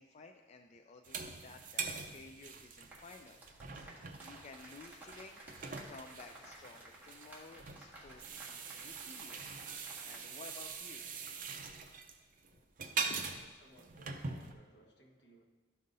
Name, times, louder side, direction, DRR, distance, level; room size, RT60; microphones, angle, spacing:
voice 1, 0.0-3.4 4.2-9.6 10.0-11.1 12.5-12.6 13.1-13.4, left 3 dB, 40° left, 4 dB, 0.3 m, -54 dB
sound 1, 1.0-14.5, right 5 dB, 50° right, 0.6 m, -43 dB
sound 2, 2.9-10.3 10.5-10.8, right 2 dB, 10° right, 1.5 m, -54 dB
voice 2, 12.8-15.4, right 2 dB, 80° left, 0 dB, 1.3 m, -63 dB
12.0 x 5.4 x 2.6 m, 1.3 s
head